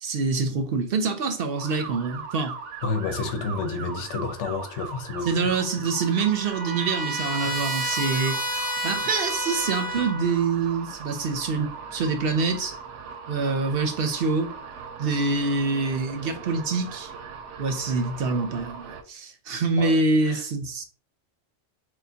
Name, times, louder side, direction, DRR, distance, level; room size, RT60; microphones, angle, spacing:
voice 1, 0.0-2.6 5.3-8.4 8.6-12.8 13.3-14.5 15.0-17.1 17.6-20.8, right 4 dB, 60° right, 0.7 m, -25 dB
sound 1, 1.6-19.0, right 5 dB, 85° right, 0.9 m, -40 dB
voice 2, 2.8-5.6 19.8-20.4, left 4 dB, 85° left, 1.0 m, -30 dB
Trumpet, 5.7-10.4, right 1 dB, 10° right, 0.6 m, -30 dB
6.3 x 2.2 x 2.7 m
omnidirectional pair, 1.2 m